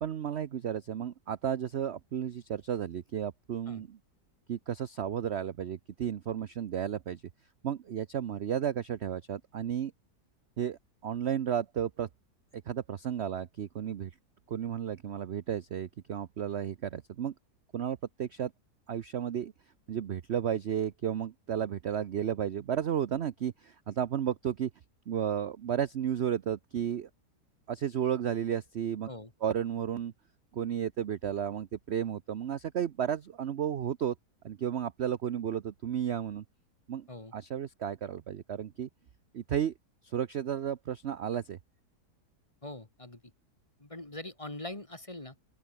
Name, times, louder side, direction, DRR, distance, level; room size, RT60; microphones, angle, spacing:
voice 1, 0.0-4.0 4.5-7.2 7.6-9.9 10.6-12.1 12.7-14.1 14.5-17.3 17.7-18.5 18.9-19.5 19.9-24.7 25.1-27.1 27.7-29.1 29.4-30.1 30.5-34.1 34.4-36.4 36.9-37.1 37.3-38.9 39.3-39.7 40.0-41.6, right 9 dB, 55° right, 0.8 m, -33 dB
voice 2, 42.6-43.2 43.8-45.4, left 2 dB, 20° left, 2.2 m, -42 dB
open air
omnidirectional pair, 1.8 m